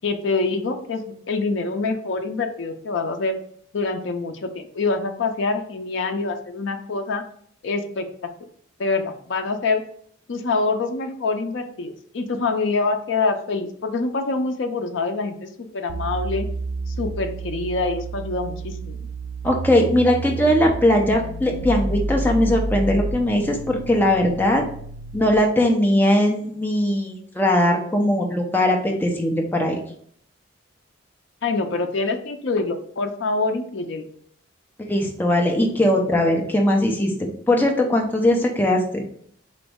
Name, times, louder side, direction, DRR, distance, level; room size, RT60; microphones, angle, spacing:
voice 1, 0.0-3.4 3.7-7.2 7.6-8.1 8.8-9.8 10.3-16.5 16.9-19.0 31.4-34.1, left 3 dB, 65° left, 6 dB, 0.4 m, -25 dB
sound 1, 15.9-25.5, right 2 dB, 70° right, 0.4 m, -30 dB
voice 2, 19.4-24.6 25.1-29.8 34.9-39.0, left 1 dB, 10° left, 0 dB, 0.5 m, -20 dB
4.0 x 3.0 x 3.5 m, 0.64 s
head